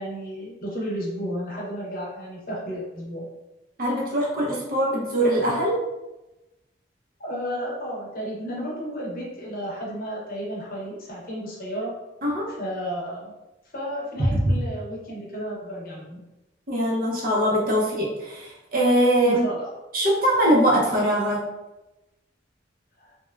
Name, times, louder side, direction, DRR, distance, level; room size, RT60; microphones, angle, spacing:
voice 1, 0.0-3.3 7.2-12.0 12.6-13.3 13.7-16.2 19.2-19.7 23.0-23.2, equal, 50° left, -4 dB, 0.8 m, -33 dB
voice 2, 3.8-5.8 12.2-12.5 14.2-14.3 16.7-19.4 19.9-21.4, equal, 50° right, -3 dB, 0.6 m, -22 dB
3.1 x 2.2 x 2.3 m, 1.0 s
head